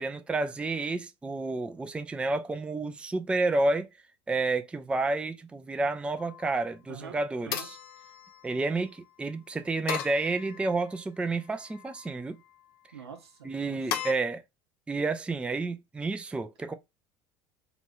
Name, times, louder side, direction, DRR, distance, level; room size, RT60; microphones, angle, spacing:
voice 1, 0.0-3.9 4.3-7.8 8.4-12.4 13.4-14.4 14.9-16.7, right 3 dB, 10° right, 0.4 m, -30 dB
sound 1, 6.2-6.7 7.5-8.9 9.9-11.0 11.5-12.2 13.9-14.1, left 9 dB, 60° left, 0.5 m, -37 dB
voice 2, 6.9-7.7 12.9-13.8, right 7 dB, 75° right, 0.7 m, -46 dB
3.0 x 2.4 x 3.1 m
figure-of-eight pair, 70°, 14 cm